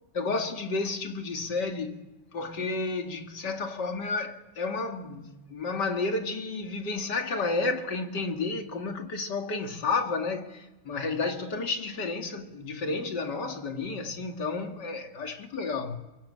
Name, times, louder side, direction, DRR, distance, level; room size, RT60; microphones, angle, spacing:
voice 1, 0.1-2.0 2.3-16.0, left 3 dB, 55° left, 2.7 m, -31 dB
29.0 x 23.5 x 8.7 m
omnidirectional pair, 2.2 m